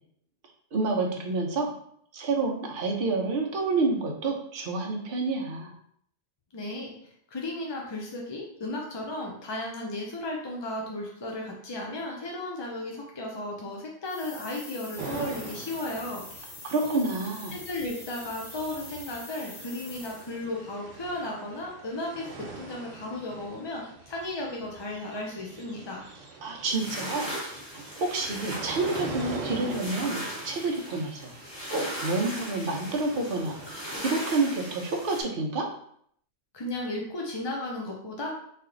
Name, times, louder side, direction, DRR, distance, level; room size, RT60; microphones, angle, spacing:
voice 1, 0.7-1.7 2.1-5.7 16.6-17.5 26.4-27.3 27.7-31.3 31.7-35.7, right 3 dB, 50° right, 1 dB, 0.8 m, -29 dB
voice 2, 6.5-16.2 16.8-17.0 17.5-26.0 36.5-38.3, left 1 dB, 45° left, -1 dB, 0.3 m, -35 dB
sound 1, 14.0-20.5, left 2 dB, 70° left, 1.4 m, -45 dB
sound 2, 15.0-34.0, right 4 dB, 80° right, 1.1 m, -43 dB
sound 3, 26.7-35.2, equal, 20° left, 1.2 m, -38 dB
3.3 x 2.9 x 3.7 m, 0.67 s
omnidirectional pair, 1.3 m